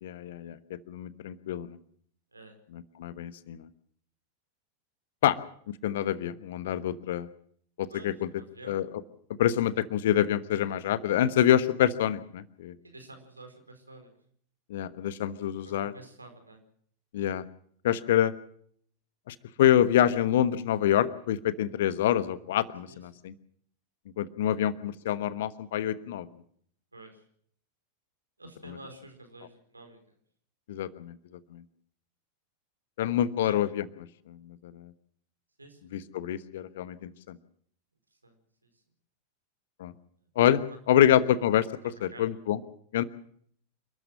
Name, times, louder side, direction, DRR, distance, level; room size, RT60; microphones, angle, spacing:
voice 1, 0.0-0.6 0.9-1.8 2.7-3.7 5.2-5.4 5.7-7.3 7.8-8.3 8.6-8.9 9.4-12.7 14.7-15.9 17.1-17.4 17.8-18.3 19.3-23.3 24.2-26.3 28.6-28.8 30.7-31.1 31.5-31.6 33.0-33.9 34.3-34.9 35.9-37.4 39.8-39.9 40.3-40.6 40.9-41.7 42.0-42.6 42.9-43.0, left 11 dB, 55° left, 15 dB, 1.2 m, -26 dB
voice 2, 7.9-8.8 12.8-14.1 15.6-16.6 22.9-23.2 26.9-27.2 28.4-30.0 33.4-33.6 35.6-35.9 38.2-38.3 40.7-40.8 41.8-42.3, right 2 dB, 80° right, 5 dB, 4.7 m, -49 dB
28.5 x 13.0 x 7.5 m, 0.63 s
figure-of-eight pair, 90°, 0 cm